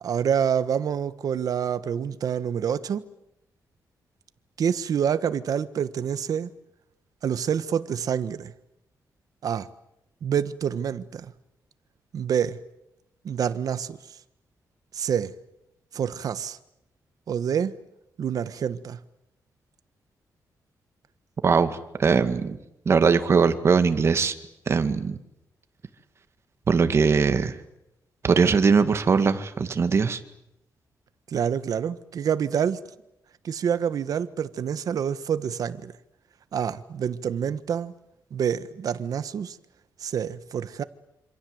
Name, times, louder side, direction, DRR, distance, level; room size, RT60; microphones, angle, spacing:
voice 1, 0.0-3.0 4.6-6.5 7.2-8.5 9.4-9.7 10.2-11.3 12.1-12.6 13.2-14.0 14.9-15.3 15.9-16.6 17.3-17.7 18.2-19.0 31.3-32.8 33.4-35.9 36.5-37.9 38.3-39.6 40.0-40.8, right 8 dB, 60° right, 1.4 m, -27 dB
voice 2, 21.4-22.6 22.9-24.4 24.7-25.2 26.7-27.6 28.2-30.2, right 5 dB, 40° right, 2.0 m, -21 dB
27.0 x 26.5 x 8.0 m
wide cardioid pair, 145°, 7 cm